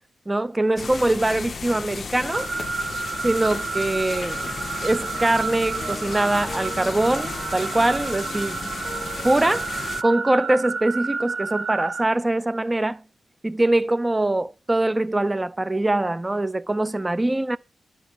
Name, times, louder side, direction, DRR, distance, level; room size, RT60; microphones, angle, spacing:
voice 1, 0.3-2.5 3.2-4.4 4.8-8.6 9.2-9.7 10.0-13.0 13.4-17.6, right 2 dB, 15° right, 0.6 m, -23 dB
sound 1, 0.8-10.0, left 5 dB, 40° left, 0.6 m, -34 dB
sound 2, 2.3-12.1, right 5 dB, 55° right, 1.0 m, -31 dB
sound 3, 4.1-9.9, left 1 dB, 15° left, 1.1 m, -40 dB
12.0 x 5.0 x 6.7 m
wide cardioid pair, 160°, 0 cm